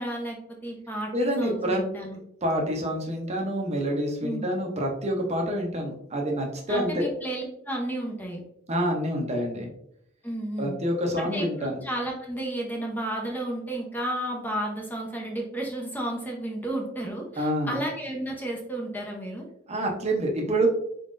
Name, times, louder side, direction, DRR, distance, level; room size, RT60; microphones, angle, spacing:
voice 1, 0.0-2.2 4.2-4.5 6.7-8.4 10.2-10.8 11.2-19.5, right 1 dB, 10° left, -1 dB, 0.7 m, -32 dB
voice 2, 1.1-1.8 2.4-7.1 8.7-9.7 10.6-11.8 17.4-17.8 19.7-20.7, equal, 35° right, 1 dB, 0.8 m, -27 dB
4.2 x 3.7 x 2.5 m, 0.74 s
head